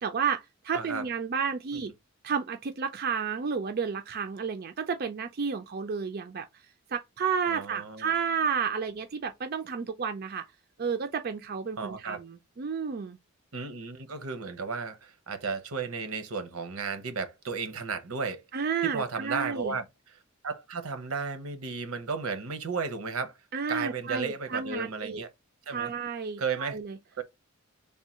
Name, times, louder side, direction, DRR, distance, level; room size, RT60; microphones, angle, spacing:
voice 1, 0.0-1.9 2.2-6.5 6.9-10.4 10.8-13.2 18.5-19.8 23.5-25.2 25.7-27.0, right 6 dB, 45° right, 0.4 m, -31 dB
voice 2, 0.7-1.0 1.7-1.9 7.5-8.1 11.8-12.2 13.5-18.4 18.8-23.4 23.7-25.3 25.7-25.9 26.4-26.8 27.2-27.3, right 5 dB, 85° right, 0.8 m, -34 dB
3.6 x 2.2 x 4.2 m
head